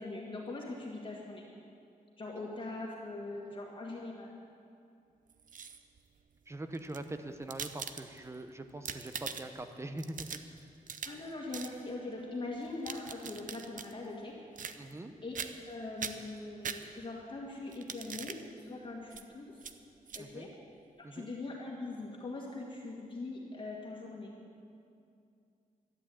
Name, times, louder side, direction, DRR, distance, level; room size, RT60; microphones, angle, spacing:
voice 1, 0.0-1.5 2.2-4.3 11.0-14.3 15.2-15.4 15.7-19.7 20.1-20.5 21.0-24.4, left 2 dB, 35° left, -3 dB, 1.9 m, -42 dB
sound 1, 5.3-6.0 6.7-8.4 8.7-9.6 10.0-11.3 11.5-11.8 12.6-13.9 14.6-15.1 15.4-15.7 16.0-17.2 17.7-18.4 19.1-19.2 19.6-19.7 20.1-20.2, right 6 dB, 65° right, 0.7 m, -42 dB
voice 2, 6.5-10.3 14.8-15.1 20.2-20.5 21.0-21.3, right 2 dB, 20° right, 8 dB, 0.8 m, -43 dB
12.5 x 11.0 x 8.7 m, 2.4 s
wide cardioid pair, 165°, 15 cm